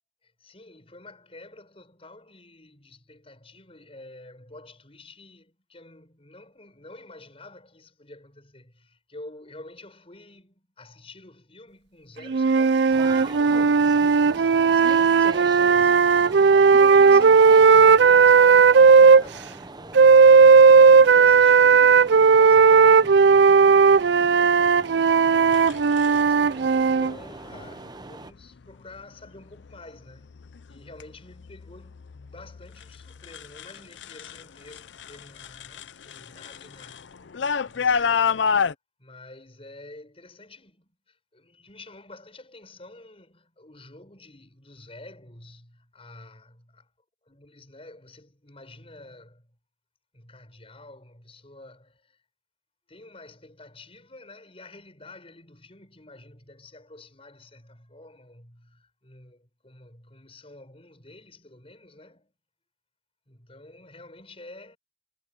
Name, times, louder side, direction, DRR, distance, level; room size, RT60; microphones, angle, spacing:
voice 1, 0.2-13.8 14.2-23.3 23.8-25.1 25.4-25.9 26.2-30.4 30.7-37.2 37.6-38.5 39.0-46.9 47.3-49.6 50.1-52.2 52.9-62.3 63.3-64.8, left 2 dB, 35° left, 6.1 m, -48 dB
sound 1, 12.3-19.2 19.9-27.1, right 5 dB, 65° right, 0.4 m, -15 dB
sound 2, 12.9-28.3, right 2 dB, 25° right, 0.9 m, -40 dB
sound 3, 25.5-26.2 27.3-27.7 28.2-28.7 29.2-29.8 30.1-34.4 34.7-38.7, left 6 dB, 80° left, 0.6 m, -29 dB
head